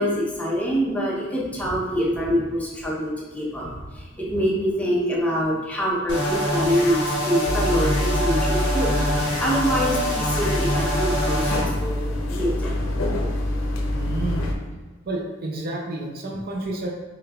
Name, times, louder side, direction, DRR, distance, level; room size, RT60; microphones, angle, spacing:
voice 1, 0.0-12.7, equal, 10° left, -4 dB, 0.7 m, -25 dB
sound 1, 6.1-11.6, equal, 55° left, 1.0 m, -25 dB
sound 2, 7.4-14.5, left 1 dB, 90° left, 0.5 m, -26 dB
voice 2, 13.9-14.4 15.1-16.9, right 2 dB, 50° right, 0 dB, 0.5 m, -30 dB
5.0 x 3.4 x 2.3 m, 1.2 s
head